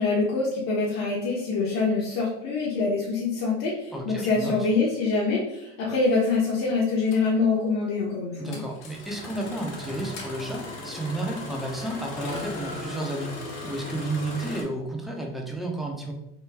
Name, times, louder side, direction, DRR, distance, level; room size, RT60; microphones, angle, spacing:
voice 1, 0.0-8.6, left 4 dB, 60° left, -6 dB, 0.9 m, -25 dB
voice 2, 3.9-4.7 8.4-16.1, right 2 dB, ahead, 0 dB, 0.6 m, -32 dB
Engine starting, 5.8-5.9 7.1-7.3 8.5-14.6, left 2 dB, 85° left, 1.1 m, -37 dB
3.1 x 2.2 x 3.3 m, 0.82 s
supercardioid pair, 110°, 30 cm